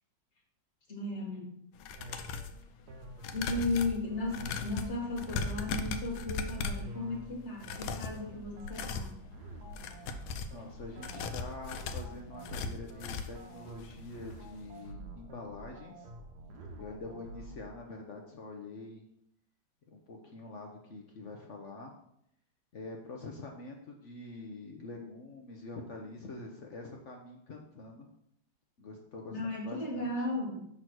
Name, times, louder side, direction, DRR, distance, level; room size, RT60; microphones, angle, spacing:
voice 1, 0.9-1.5 3.3-9.1 29.3-30.7, left 2 dB, 35° left, -1 dB, 1.7 m, -35 dB
sound 1, 1.8-2.6 3.2-6.9 7.6-8.2 8.6-9.1 9.6-10.6 11.0-13.5 13.8-13.9 14.3-14.4, left 4 dB, 90° left, 1.4 m, -38 dB
sound 2, 1.9-17.8, right 1 dB, 65° right, 1.2 m, -48 dB
voice 2, 3.2-3.6 10.0-10.1 10.5-16.1 16.8-19.0 19.9-21.9 22.7-28.1 28.8-30.1, left 3 dB, 60° left, 1 dB, 0.8 m, -45 dB
6.0 x 3.9 x 6.0 m, 0.74 s
omnidirectional pair, 2.1 m